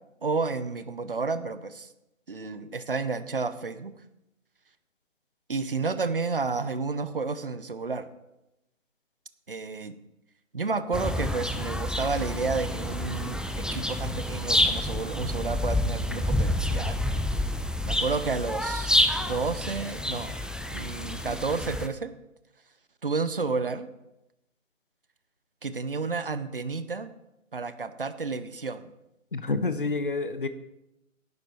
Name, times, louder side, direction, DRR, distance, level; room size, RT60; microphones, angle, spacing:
voice 1, 0.2-1.9 2.3-3.9 5.5-8.1 9.5-9.9 10.5-17.0 17.8-20.4 20.7-22.1 23.0-23.9 25.6-27.1 27.5-28.8, right 4 dB, 45° right, 12 dB, 0.7 m, -31 dB
sound 1, 10.9-21.9, left 1 dB, ahead, 0.3 m, -28 dB
voice 2, 29.3-30.5, left 3 dB, 40° left, 12 dB, 0.7 m, -28 dB
11.5 x 9.6 x 4.3 m, 0.90 s
hypercardioid pair, 180°, 40 cm